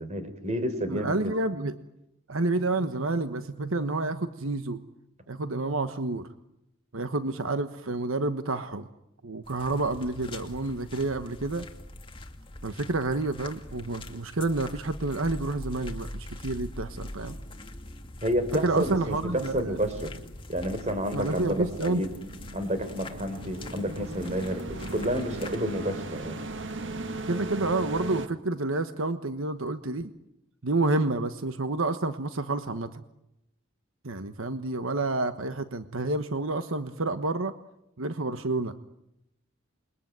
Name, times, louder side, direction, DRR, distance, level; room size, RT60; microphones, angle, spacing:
voice 1, 0.0-1.1 18.2-20.1 20.5-22.1 22.5-26.4, equal, 35° right, 10 dB, 4.0 m, -30 dB
voice 2, 0.9-1.8 2.3-4.8 5.3-6.3 6.9-8.9 9.2-11.7 12.6-17.4 18.6-19.8 21.1-22.0 27.1-30.1 30.6-33.0 34.0-37.5 38.0-38.7, right 2 dB, 80° right, 10 dB, 1.3 m, -29 dB
sound 1, 9.4-25.6, left 1 dB, 25° left, 2.4 m, -43 dB
sound 2, 20.9-28.3, right 2 dB, 60° right, 1.8 m, -38 dB
28.0 x 22.5 x 9.5 m, 0.84 s
head